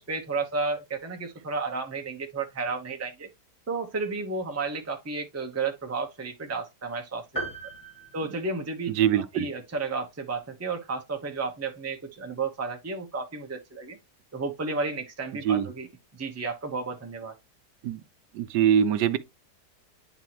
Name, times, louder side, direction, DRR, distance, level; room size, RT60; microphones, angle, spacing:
voice 1, 0.0-3.3 3.7-7.5 8.1-8.9 9.2-14.0 14.3-15.9 16.2-17.3, right 4 dB, 15° right, 0.6 m, -32 dB
sound 1, 7.4-9.1, right 2 dB, 20° left, 2.0 m, -38 dB
voice 2, 8.9-9.5 15.4-15.7 17.8-18.0 18.3-19.2, right 9 dB, 80° right, 1.2 m, -23 dB
9.5 x 4.1 x 3.0 m
omnidirectional pair, 1.8 m